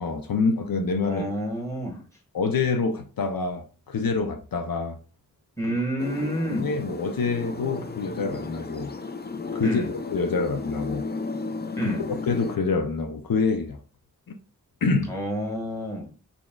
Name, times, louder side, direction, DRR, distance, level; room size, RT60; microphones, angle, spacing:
voice 1, 0.0-1.2 2.3-5.0 6.5-8.9 9.5-11.1 11.8-11.9 12.2-13.8 14.8-15.1, left 4 dB, 80° left, 0.5 m, -26 dB
voice 2, 1.0-2.0 5.6-6.7 9.6-9.9 11.8-12.0 15.1-16.1, right 1 dB, 10° left, 1.5 m, -29 dB
sound 1, 6.0-12.6, left 3 dB, 30° left, 0.4 m, -34 dB
4.2 x 3.6 x 2.2 m
wide cardioid pair, 45°, 34 cm